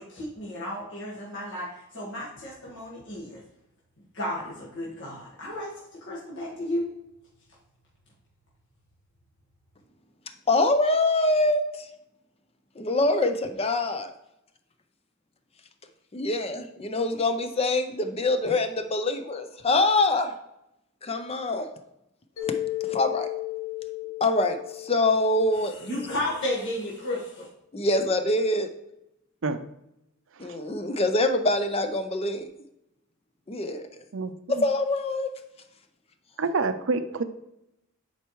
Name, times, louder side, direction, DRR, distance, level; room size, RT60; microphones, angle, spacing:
voice 1, 0.0-3.4 4.1-6.9 25.5-27.5, left 1 dB, 60° left, -6 dB, 1.6 m, -33 dB
voice 2, 10.5-11.9 12.8-14.1 16.1-20.3 21.0-21.7 22.9-23.3 24.2-25.7 27.7-28.7 30.4-32.5 33.5-33.9 34.5-35.3, left 2 dB, 30° left, 8 dB, 0.5 m, -24 dB
Mallet percussion, 22.4-26.5, left 15 dB, 80° left, 1.5 m, -35 dB
voice 3, 34.1-34.6 36.4-37.2, right 4 dB, 65° right, 10 dB, 0.6 m, -28 dB
10.5 x 4.4 x 3.1 m, 0.84 s
head